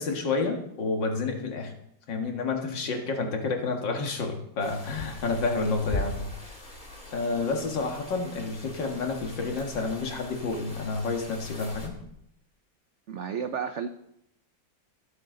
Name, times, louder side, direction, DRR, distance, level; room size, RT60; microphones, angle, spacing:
voice 1, 0.0-1.7 2.1-6.3 7.1-11.9, left 3 dB, 70° left, 3 dB, 2.4 m, -29 dB
sound 1, 4.6-11.9, left 1 dB, 25° left, 2.2 m, -40 dB
voice 2, 13.1-13.9, right 7 dB, 75° right, 8 dB, 0.6 m, -32 dB
21.0 x 8.0 x 3.8 m, 0.76 s
omnidirectional pair, 2.0 m